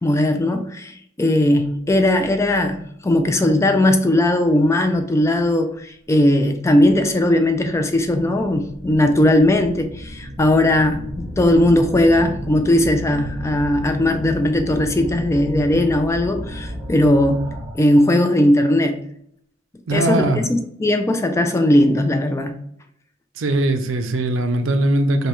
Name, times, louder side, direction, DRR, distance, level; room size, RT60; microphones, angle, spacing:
voice 1, 0.0-17.4 17.7-19.0 19.9-22.5, left 1 dB, 15° left, 7 dB, 0.3 m, -18 dB
sound 1, 6.5-6.6 7.3-18.0, equal, 15° right, 1.5 m, -33 dB
voice 2, 19.9-20.5 23.4-25.3, right 1 dB, 85° right, 8 dB, 0.5 m, -20 dB
5.1 x 2.2 x 3.0 m, 0.69 s
head